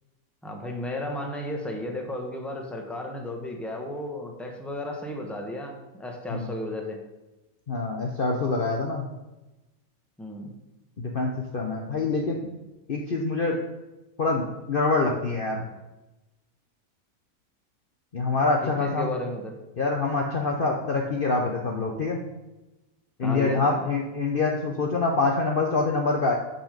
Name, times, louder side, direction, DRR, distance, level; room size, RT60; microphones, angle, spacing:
voice 1, 0.4-7.0 10.2-10.5 18.8-19.6 23.2-23.8, left 1 dB, ahead, 2 dB, 1.1 m, -33 dB
voice 2, 7.7-9.1 11.0-12.4 12.9-13.6 14.2-15.7 18.1-19.1 19.8-22.2 23.2-26.4, left 3 dB, 45° left, 0 dB, 0.9 m, -25 dB
8.9 x 5.4 x 5.1 m, 1.0 s
omnidirectional pair, 1.6 m